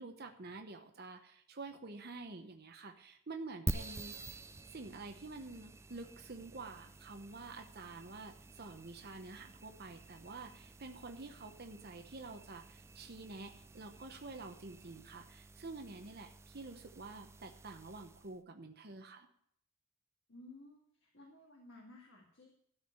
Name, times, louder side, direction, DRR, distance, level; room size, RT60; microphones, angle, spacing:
voice 1, 0.0-4.3 4.7-19.3, right 3 dB, 50° right, 4 dB, 0.9 m, -48 dB
sound 1, 3.7-18.4, right 2 dB, 15° right, 0.3 m, -48 dB
voice 2, 20.3-22.5, left 2 dB, 65° left, -1 dB, 2.0 m, -56 dB
13.0 x 5.0 x 8.4 m, 0.67 s
head